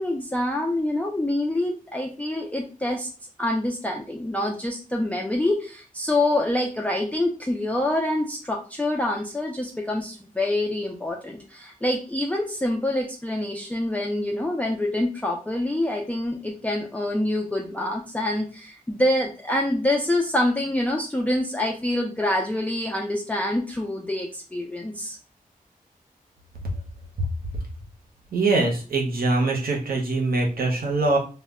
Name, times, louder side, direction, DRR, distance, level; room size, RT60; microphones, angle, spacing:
voice 1, 0.0-3.1 3.4-25.2, left 1 dB, 10° left, 0 dB, 0.3 m, -26 dB
voice 2, 28.3-31.2, right 3 dB, 85° right, 0 dB, 0.7 m, -23 dB
2.1 x 2.1 x 3.5 m, 0.36 s
wide cardioid pair, 105°, 15 cm